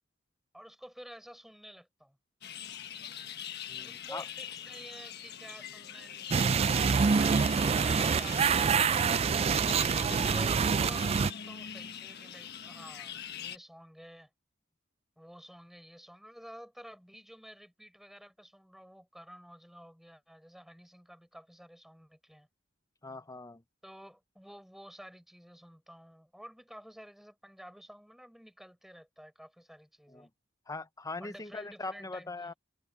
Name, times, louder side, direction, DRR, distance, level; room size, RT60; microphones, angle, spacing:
voice 1, 0.5-2.2 3.8-6.8 7.1-9.4 10.0-14.3 15.2-22.5 23.8-30.3 31.2-32.5, equal, ahead, 6.6 m, -51 dB
sound 1, 2.4-13.6, left 9 dB, 60° left, 1.4 m, -43 dB
voice 2, 3.7-4.2 23.0-23.6 30.1-30.3 30.7-32.5, left 3 dB, 20° left, 0.7 m, -41 dB
sound 2, 6.3-11.3, right 6 dB, 30° right, 0.3 m, -26 dB
head